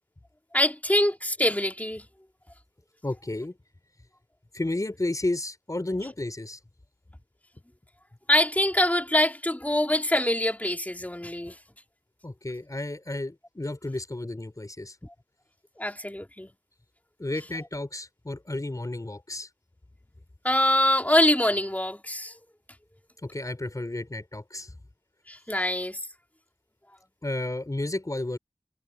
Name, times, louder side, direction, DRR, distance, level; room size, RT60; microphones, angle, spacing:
voice 1, 0.5-2.0 8.3-11.6 15.8-16.5 20.4-22.3 25.3-26.0, left 1 dB, 15° left, 3.2 m, -24 dB
voice 2, 3.0-3.5 4.5-6.6 12.2-15.0 17.2-19.5 23.2-24.7 27.2-28.4, left 2 dB, 40° left, 3.9 m, -32 dB
wide cardioid pair, 45°, 9 cm